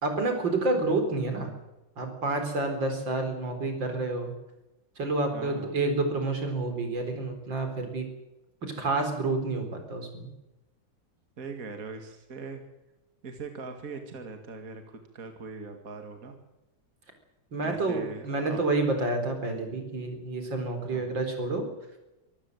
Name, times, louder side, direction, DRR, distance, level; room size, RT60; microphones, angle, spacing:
voice 1, 0.0-1.5 2.0-4.3 5.0-8.1 8.6-10.3 17.5-21.6, right 2 dB, 80° right, 5 dB, 4.9 m, -29 dB
voice 2, 5.3-5.8 11.4-12.6 13.2-16.4 17.6-18.6 20.7-21.2, right 4 dB, 50° right, 5 dB, 2.5 m, -41 dB
24.5 x 14.0 x 7.9 m, 0.98 s
omnidirectional pair, 2.0 m